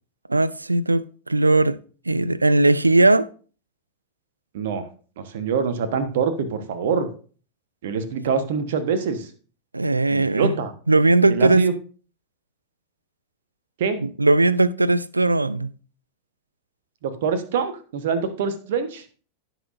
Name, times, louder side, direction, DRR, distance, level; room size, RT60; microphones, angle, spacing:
voice 1, 0.3-1.8 2.1-3.3 9.7-10.5 10.9-11.6 14.0-15.7, right 2 dB, 80° right, 0.4 m, -18 dB
voice 2, 4.5-4.9 5.2-7.1 7.8-9.3 10.1-10.7 11.3-11.7 13.8-14.0 17.0-19.0, right 5 dB, 55° right, 1.3 m, -25 dB
17.0 x 5.9 x 2.6 m
figure-of-eight pair, 90°, 0 cm